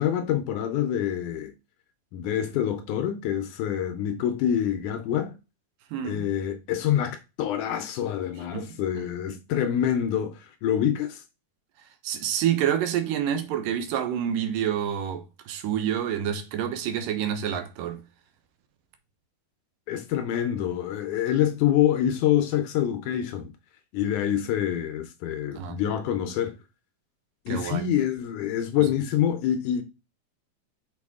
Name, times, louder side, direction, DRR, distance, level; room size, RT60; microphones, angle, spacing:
voice 1, 0.0-1.5 2.1-5.3 6.0-11.2 19.9-23.5 23.9-26.6 27.5-29.8, left 10 dB, 75° left, 2.0 m, -26 dB
voice 2, 5.9-6.3 8.5-8.7 9.0-9.1 12.0-18.0 25.5-25.8 27.5-27.9 28.8-28.9, right 9 dB, 80° right, 2.4 m, -28 dB
6.0 x 4.7 x 3.6 m
omnidirectional pair, 4.0 m